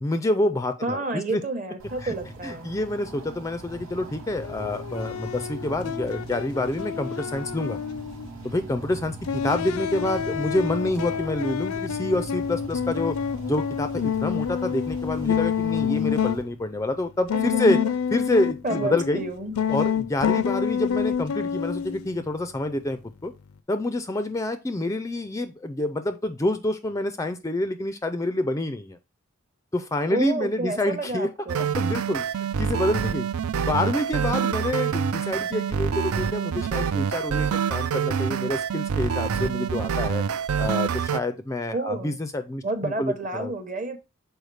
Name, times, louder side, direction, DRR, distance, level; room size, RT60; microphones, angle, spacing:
voice 1, 0.0-1.4 2.0-2.1 2.4-7.8 8.4-13.2 13.5-17.8 18.1-19.2 19.7-23.3 23.7-29.0 29.7-31.3 31.6-33.3 33.6-40.2 40.6-43.5, left 1 dB, 15° left, 10 dB, 0.3 m, -27 dB
voice 2, 0.8-2.7 17.3-17.9 18.6-19.6 30.1-31.7 41.7-42.1 42.6-44.0, right 2 dB, 35° right, 8 dB, 0.9 m, -30 dB
sound 1, 1.8-16.4, right 2 dB, 65° right, 1.0 m, -40 dB
sound 2, 4.4-8.3 9.2-16.4 17.3-19.3 19.6-22.1, left 8 dB, 80° left, 0.4 m, -28 dB
sound 3, 31.5-41.2, right 7 dB, 85° right, 0.4 m, -26 dB
6.4 x 4.5 x 3.2 m, 0.26 s
head